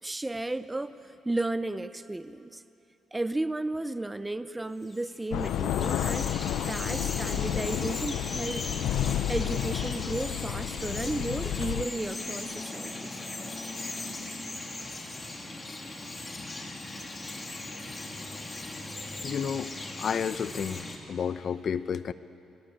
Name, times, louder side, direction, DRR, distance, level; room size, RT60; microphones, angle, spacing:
voice 1, 0.0-2.6 3.1-6.3 6.7-8.7 9.3-13.2, right 2 dB, 10° right, 13 dB, 0.6 m, -33 dB
Bird vocalization bird call bird song, 4.8-21.0, left 2 dB, 25° left, 2.9 m, -38 dB
sound 1, 5.3-11.8, left 12 dB, 85° left, 0.5 m, -31 dB
voice 2, 19.2-19.7 20.0-22.1, left 7 dB, 50° left, 14 dB, 0.7 m, -31 dB
24.5 x 19.0 x 10.0 m, 2.9 s
cardioid pair, 115°, 0 cm